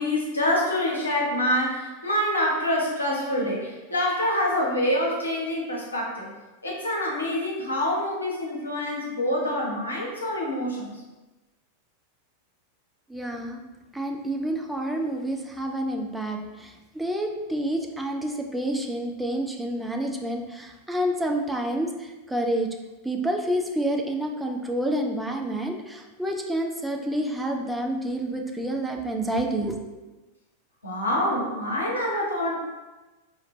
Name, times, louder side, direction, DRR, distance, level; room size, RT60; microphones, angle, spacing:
voice 1, 0.0-6.3 6.6-10.9 30.8-32.5, left 1 dB, 80° left, -3 dB, 0.9 m, -26 dB
voice 2, 13.1-13.6 13.9-22.7 23.0-29.8, right 1 dB, 5° right, 2 dB, 0.4 m, -28 dB
4.3 x 2.5 x 3.0 m, 1.1 s
figure-of-eight pair, 90°, 0 cm